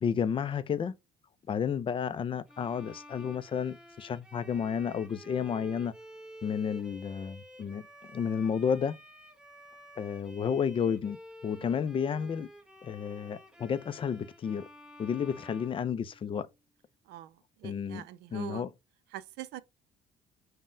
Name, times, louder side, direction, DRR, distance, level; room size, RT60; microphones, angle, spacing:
voice 1, 0.0-0.9 1.5-5.9 6.4-7.9 8.1-8.9 10.0-11.2 11.4-12.5 12.8-14.7 15.0-16.5 17.6-18.0 18.3-18.7, left 7 dB, 30° left, 0.3 m, -31 dB
Bowed string instrument, 2.5-16.6, equal, 5° right, 0.7 m, -51 dB
voice 2, 17.1-18.6 19.1-19.6, right 14 dB, 85° right, 0.4 m, -44 dB
5.4 x 2.1 x 2.5 m
cardioid pair, 110°, 17 cm